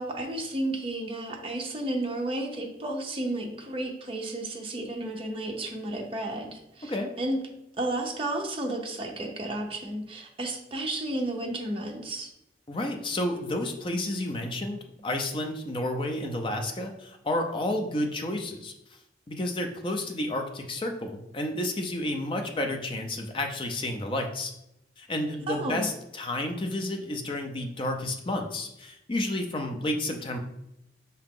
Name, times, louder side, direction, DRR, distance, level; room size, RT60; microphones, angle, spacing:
voice 1, 0.0-7.4 7.8-12.3 25.5-25.9, right 1 dB, 30° right, 1 dB, 0.6 m, -32 dB
voice 2, 12.7-18.7 19.3-24.5 25.0-30.4, left 1 dB, 30° left, 4 dB, 0.5 m, -31 dB
4.8 x 2.8 x 3.6 m, 0.83 s
head